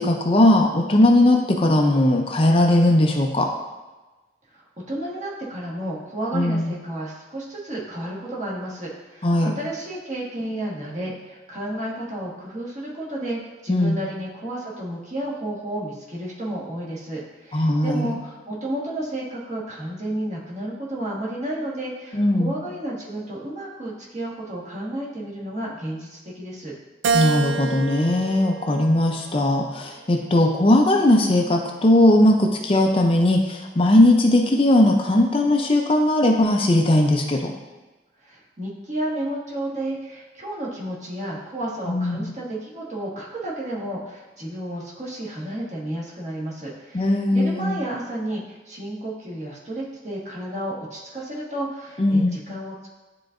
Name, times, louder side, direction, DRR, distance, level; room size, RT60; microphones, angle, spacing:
voice 1, 0.0-3.5 6.3-6.7 9.2-9.5 13.7-14.0 17.5-18.1 22.1-22.5 27.1-37.5 41.9-42.3 46.9-47.8 52.0-52.4, left 1 dB, 30° left, 2 dB, 0.5 m, -18 dB
voice 2, 4.5-26.7 38.2-52.9, right 1 dB, 40° right, -6 dB, 1.5 m, -32 dB
Keyboard (musical), 27.0-29.5 30.1-31.3, right 5 dB, 80° right, 0.3 m, -28 dB
10.5 x 3.8 x 2.5 m, 1.2 s
head